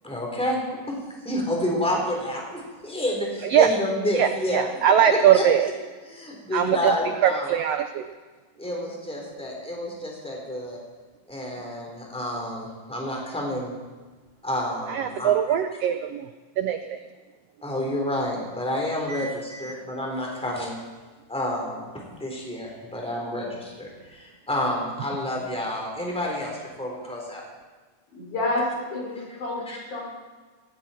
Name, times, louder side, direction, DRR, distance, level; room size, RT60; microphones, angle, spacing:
voice 1, 0.0-1.0 1.2-4.6 5.1-5.7 6.0-7.6 8.6-10.8 11.3-13.7 14.4-15.3 17.6-20.8 21.3-21.9 22.2-27.4 29.7-29.8, left 1 dB, ahead, -1 dB, 3.5 m, -29 dB
voice 2, 4.1-5.7 6.5-6.9 7.2-8.0 14.9-16.2 16.6-16.8 19.1-19.3, right 9 dB, 80° right, 8 dB, 1.4 m, -21 dB
voice 3, 28.1-30.0, left 2 dB, 70° left, -3 dB, 6.8 m, -29 dB
18.0 x 16.5 x 4.4 m, 1.4 s
omnidirectional pair, 3.6 m